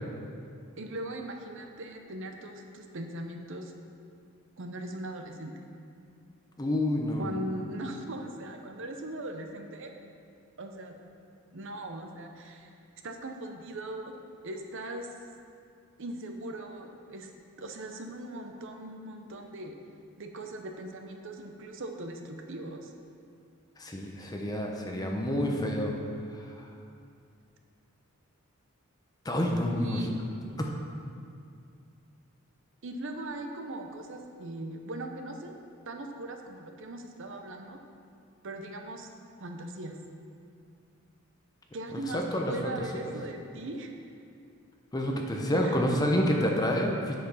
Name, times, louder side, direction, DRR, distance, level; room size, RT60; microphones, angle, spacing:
voice 1, 0.8-3.7 4.6-5.5 7.2-9.9 10.6-10.9 11.5-12.7 13.0-14.1 14.4-15.1 16.0-17.3 17.6-19.8 20.2-22.9 29.7-30.1 32.8-37.8 38.4-39.1 39.4-40.0 41.7-43.9 45.6-45.8, right 1 dB, 60° right, 4 dB, 0.8 m, -39 dB
voice 2, 6.6-7.3 23.8-25.9 26.6-26.7 29.2-30.0 30.6-30.7 42.1-43.0 44.9-47.2, equal, 15° left, 0 dB, 0.8 m, -28 dB
7.5 x 7.2 x 5.5 m, 2.4 s
head